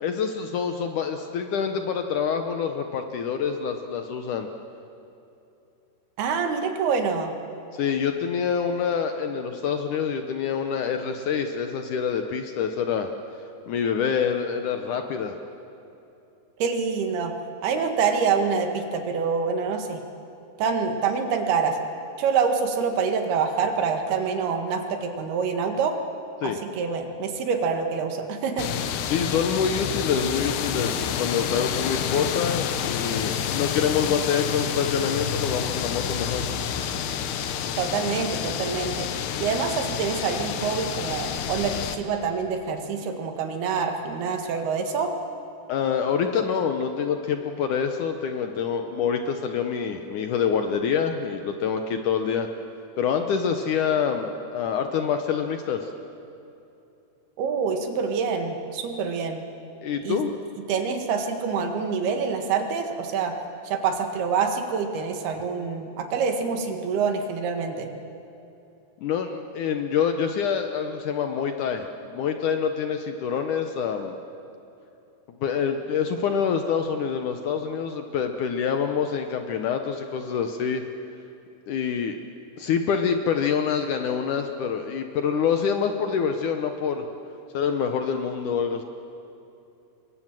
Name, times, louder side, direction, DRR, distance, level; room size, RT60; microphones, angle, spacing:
voice 1, 0.0-4.5 7.7-13.1 13.7-15.4 26.4-26.6 29.1-36.4 45.7-52.5 53.0-55.9 59.8-60.3 69.0-74.2 75.4-80.8 81.7-82.2 82.6-87.1 87.5-88.8, left 7 dB, 70° left, 6 dB, 2.0 m, -26 dB
voice 2, 6.2-7.3 16.6-17.3 17.6-20.0 20.6-21.8 22.2-26.0 26.4-28.7 37.8-45.1 57.4-59.4 60.0-60.2 60.7-63.3 63.7-67.9, right 5 dB, 80° right, 5 dB, 3.7 m, -26 dB
sound 1, 28.6-42.0, left 8 dB, 85° left, 3.2 m, -29 dB
27.0 x 22.5 x 7.6 m, 2.8 s
omnidirectional pair, 4.5 m